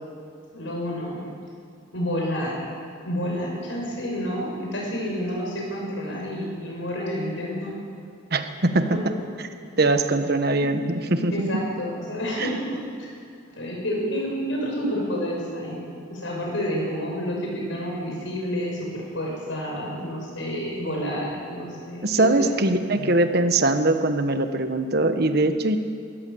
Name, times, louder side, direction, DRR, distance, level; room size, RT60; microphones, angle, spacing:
voice 1, 0.5-1.3 1.9-2.7 3.0-7.8 8.9-9.2 10.6-10.7 11.3-12.8 13.6-15.8 16.1-22.5, equal, 80° left, -2 dB, 6.7 m, -29 dB
voice 2, 8.3-9.0 9.8-11.6 12.4-12.5 22.0-25.8, right 2 dB, 55° right, 8 dB, 1.4 m, -22 dB
21.5 x 14.5 x 8.7 m, 2.4 s
head